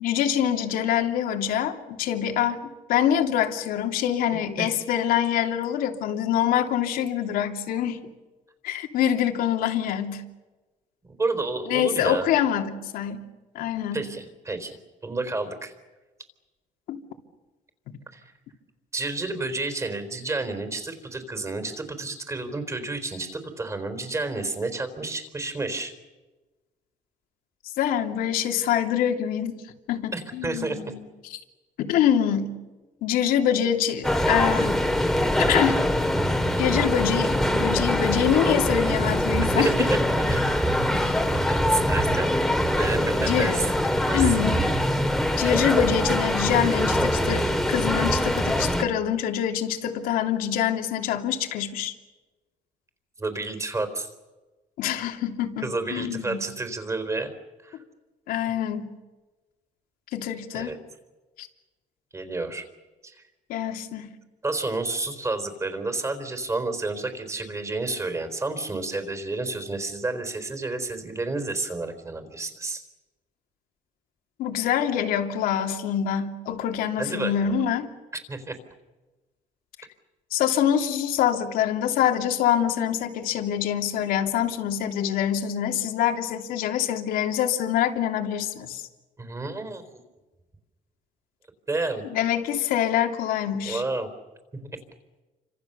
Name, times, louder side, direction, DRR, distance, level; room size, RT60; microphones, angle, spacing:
voice 1, 0.0-8.0 8.6-10.2 11.7-13.3 13.5-14.0 16.9-17.0 17.9-18.0 27.8-29.6 29.9-31.0 31.8-32.5 33.0-34.8 35.5-35.8 36.6-39.9 40.9-41.2 43.2-43.6 44.1-44.6 45.4-51.9 54.8-56.4 58.3-58.9 60.1-60.8 61.4-61.5 63.5-64.1 74.4-77.9 80.3-88.8 92.1-93.8, left 9 dB, 85° left, 4 dB, 2.9 m, -25 dB
voice 2, 11.0-12.3 13.9-14.8 15.0-15.7 18.1-18.3 18.9-25.9 30.1-30.8 39.4-40.6 41.7-43.7 44.0-44.5 53.2-54.1 55.6-57.3 57.6-57.8 60.5-60.8 62.1-62.6 63.0-63.2 64.4-72.8 77.0-77.6 78.3-78.5 89.2-89.8 91.7-92.0 93.7-94.1 94.5-94.7, right 3 dB, 20° right, 8 dB, 4.1 m, -30 dB
sound 1, 34.0-48.8, equal, 5° left, 2.2 m, -23 dB
29.5 x 26.0 x 7.0 m, 1.2 s
cardioid pair, 135°, 15 cm